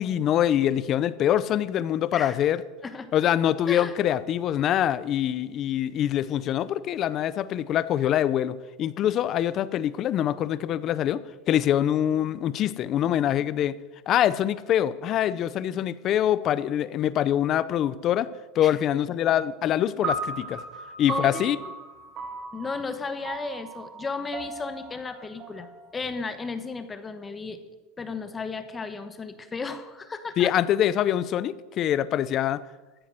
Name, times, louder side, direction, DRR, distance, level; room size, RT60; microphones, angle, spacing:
voice 1, 0.0-2.6 3.1-13.8 14.1-20.6 21.0-21.6 30.4-32.6, left 11 dB, 35° left, 16 dB, 0.6 m, -24 dB
sound 1, 20.0-26.5, right 3 dB, 35° right, 2.2 m, -36 dB
voice 2, 21.1-21.4 22.5-27.6 28.0-30.5, left 4 dB, 15° left, 10 dB, 1.1 m, -34 dB
13.5 x 9.4 x 7.7 m, 1.2 s
supercardioid pair, 150°, 0 cm